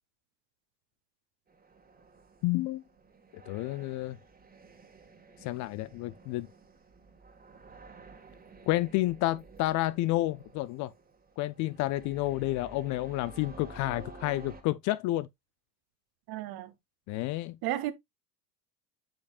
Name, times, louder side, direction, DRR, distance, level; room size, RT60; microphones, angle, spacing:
sound 1, 1.5-14.6, right 3 dB, 20° right, 1.7 m, -52 dB
voice 1, 2.4-2.8 3.3-4.2 5.4-6.5 8.7-10.9 11.4-15.3 17.1-17.6, left 17 dB, 40° left, 0.4 m, -30 dB
voice 2, 16.3-16.7 17.6-17.9, right 14 dB, 50° right, 1.1 m, -33 dB
8.8 x 5.2 x 2.4 m
hypercardioid pair, 85°, 47 cm